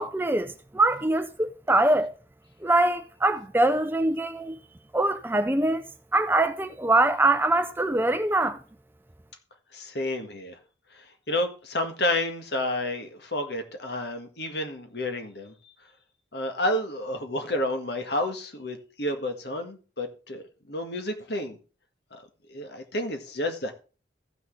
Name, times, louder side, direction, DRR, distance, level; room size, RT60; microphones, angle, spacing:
voice 1, 0.0-2.1 2.6-4.6 4.9-5.8 6.1-8.6, right 2 dB, 10° right, 0.5 m, -23 dB
voice 2, 9.7-10.6 11.0-15.5 16.3-21.6 22.1-22.2 22.5-23.7, left 1 dB, 65° left, 1.8 m, -30 dB
15.0 x 6.2 x 3.3 m
head